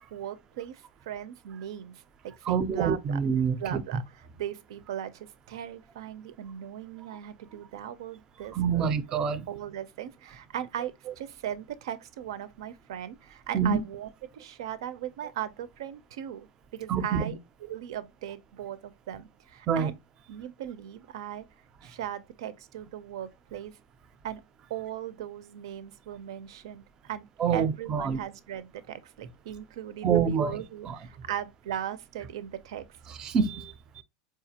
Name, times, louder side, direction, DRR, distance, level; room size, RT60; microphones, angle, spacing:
voice 1, 0.1-1.9 2.4-3.2 3.6-9.0 9.5-19.9 20.3-21.5 21.8-23.7 24.2-24.4 24.7-26.8 27.1-27.2 27.5-32.8, right 10 dB, 85° right, 0.5 m, -38 dB
voice 2, 2.5-3.8 8.5-9.5 13.5-13.8 16.9-17.2 19.7-19.9 27.4-28.2 30.0-30.6 30.9-31.0 33.2-33.7, right 7 dB, 25° right, 0.4 m, -26 dB
4.6 x 2.4 x 2.7 m
supercardioid pair, 165°, 3 cm